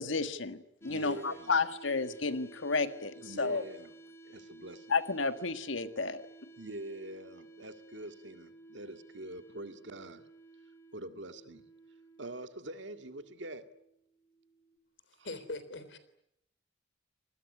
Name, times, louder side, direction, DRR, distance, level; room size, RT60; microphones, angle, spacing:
voice 1, 0.0-3.6 4.9-6.2, left 4 dB, 85° left, 11 dB, 1.5 m, -32 dB
sound 1, 0.8-14.8, right 2 dB, 15° left, 3.1 m, -55 dB
voice 2, 0.9-1.5 3.2-3.9 4.2-4.9 6.6-10.2 10.9-11.7 12.2-13.6 15.2-15.3, right 1 dB, 70° right, 9 dB, 2.0 m, -44 dB
voice 3, 15.2-16.0, left 2 dB, 70° left, 13 dB, 3.6 m, -41 dB
27.0 x 20.0 x 9.8 m, 0.77 s
head